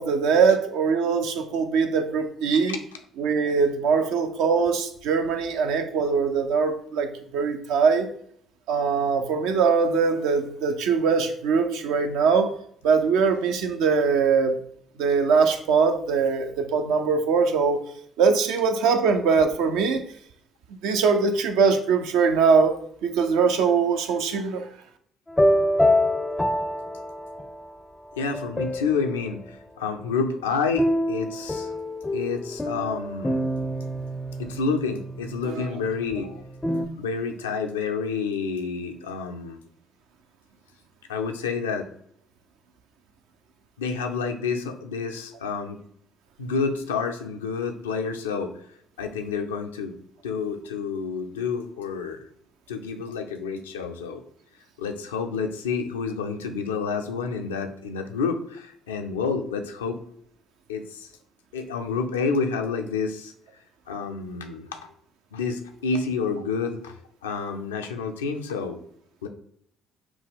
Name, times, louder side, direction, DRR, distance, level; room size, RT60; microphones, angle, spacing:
voice 1, 0.0-2.7 3.2-8.1 8.7-12.5 12.8-14.6 15.0-17.8 18.2-20.0 20.8-24.7 35.4-35.7, right 5 dB, 70° right, 6 dB, 0.5 m, -22 dB
sound 1, 25.3-27.7 28.2-29.2 30.8-36.9, left 1 dB, 15° left, 0.4 m, -26 dB
voice 2, 28.1-31.7 32.1-33.3 34.4-36.4 37.0-39.6 41.1-41.9 43.8-45.8 46.4-48.5 49.0-49.9 50.2-52.2 52.7-54.2 54.8-60.0 60.7-61.1 61.5-63.3 63.9-64.8 65.3-66.9 67.2-68.8 69.2-69.3, left 5 dB, 85° left, 5 dB, 0.4 m, -29 dB
5.9 x 2.2 x 3.5 m, 0.66 s
hypercardioid pair, 50°, 0 cm